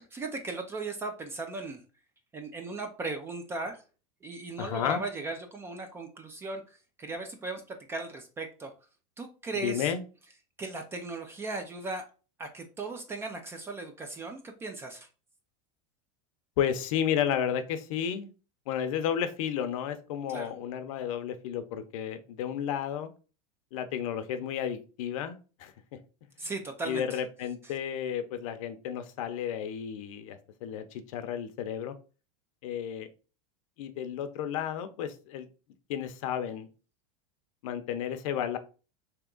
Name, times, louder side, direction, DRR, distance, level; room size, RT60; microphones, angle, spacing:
voice 1, 0.0-1.8 2.3-3.8 4.2-8.7 9.2-9.9 10.6-12.0 12.4-15.1 20.3-20.5 26.4-27.2 27.6-27.7, right 3 dB, 15° right, 6 dB, 0.4 m, -37 dB
voice 2, 4.6-5.0 9.6-10.0 16.6-18.3 18.7-23.1 23.7-25.7 26.8-32.0 32.6-33.1 33.8-35.5 35.9-36.7 37.6-38.6, left 9 dB, 65° left, 9 dB, 0.6 m, -32 dB
3.5 x 2.8 x 3.7 m, 0.35 s
supercardioid pair, 160°, 19 cm